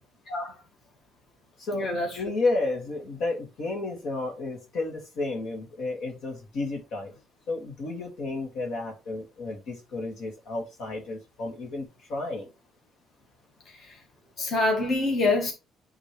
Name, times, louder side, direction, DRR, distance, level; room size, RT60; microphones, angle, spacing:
voice 1, 0.3-0.6 1.7-2.2 13.7-14.0 14.4-15.5, left 2 dB, 40° left, 1.9 m, -26 dB
voice 2, 2.2-7.1 7.5-12.5, left 2 dB, 70° left, 2.2 m, -32 dB
10.0 x 3.6 x 3.2 m
cardioid pair, 155°, 0 cm